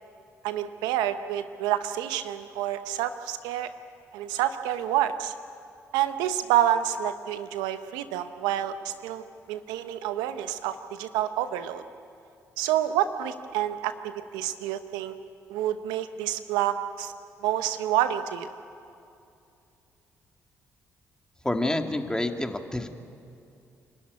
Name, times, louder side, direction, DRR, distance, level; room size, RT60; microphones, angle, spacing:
voice 1, 0.4-3.7 4.1-5.3 5.9-11.8 12.6-15.1 15.5-17.1 17.4-18.5, right 11 dB, 80° right, 10 dB, 0.9 m, -28 dB
voice 2, 21.4-22.9, left 1 dB, 10° left, 5 dB, 2.3 m, -28 dB
28.5 x 13.0 x 9.6 m, 2.6 s
hypercardioid pair, 50°, 7 cm